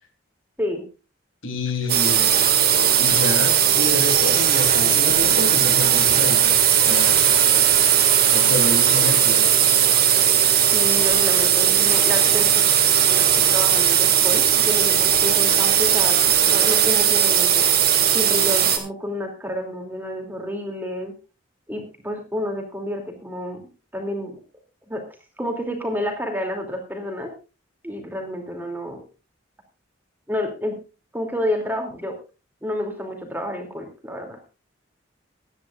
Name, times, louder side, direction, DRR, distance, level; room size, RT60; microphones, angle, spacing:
voice 1, 1.4-2.2 3.0-7.3 8.3-9.5, left 2 dB, 80° left, 5 dB, 3.3 m, -28 dB
sound 1, 1.9-18.8, right 9 dB, 45° right, 2.0 m, -18 dB
voice 2, 10.7-12.6 13.1-16.2 16.4-17.6 18.1-21.1 21.7-23.6 23.9-24.4 24.9-25.0 25.4-27.3 27.8-29.0 30.3-30.7 31.1-32.2 32.6-34.4, left 1 dB, 10° right, 3 dB, 2.7 m, -29 dB
22.5 x 9.8 x 2.5 m, 0.32 s
head